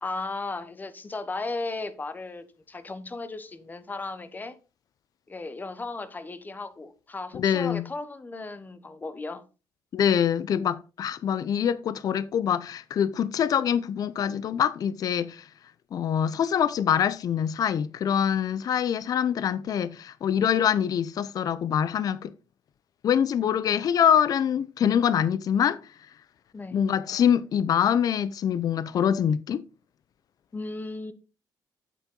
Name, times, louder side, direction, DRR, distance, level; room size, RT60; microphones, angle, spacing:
voice 1, 0.0-4.6 5.3-9.5 26.5-26.8 30.5-31.1, left 3 dB, 25° left, 1.1 m, -35 dB
voice 2, 7.3-7.8 9.9-15.5 15.9-22.3 23.0-25.8 26.7-29.6, left 8 dB, 60° left, 0.6 m, -24 dB
8.1 x 7.2 x 3.9 m
cardioid pair, 110°, 7 cm